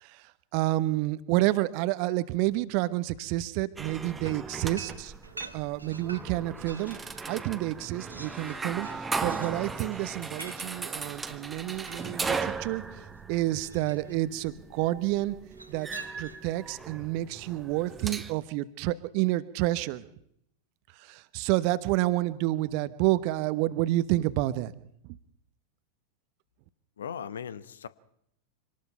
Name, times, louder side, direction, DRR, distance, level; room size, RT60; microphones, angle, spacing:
voice 1, 0.0-5.1 5.5-12.8 13.3-15.4 15.7-15.9 16.2-20.0 21.0-24.7 25.0-25.2, right 17 dB, 45° right, 1.0 m, -29 dB
sound 1, 3.8-18.3, right 4 dB, 10° right, 1.4 m, -38 dB
sound 2, 4.2-7.1 7.5-12.6 13.6-14.2 15.5-16.6, right 3 dB, 85° right, 1.8 m, -47 dB
voice 2, 27.0-27.9, left 8 dB, 65° left, 1.0 m, -38 dB
25.5 x 19.0 x 5.7 m
figure-of-eight pair, 90°, 0 cm